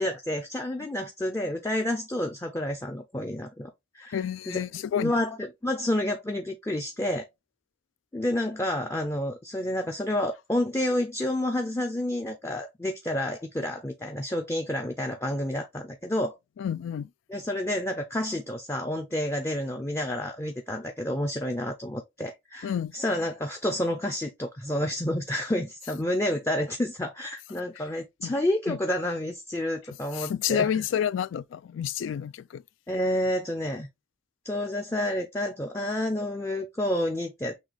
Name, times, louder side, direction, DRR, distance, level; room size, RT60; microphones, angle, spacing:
voice 1, 0.0-4.6 5.0-5.4 5.6-7.3 8.1-16.4 17.3-30.7 32.9-33.9 34.4-37.6, left 1 dB, 15° left, 0.4 m, -29 dB
voice 2, 4.1-5.1 16.6-17.1 22.6-22.9 28.2-28.3 28.7-28.8 30.1-32.6, left 9 dB, 80° left, 0.3 m, -29 dB
6.1 x 2.3 x 3.3 m
head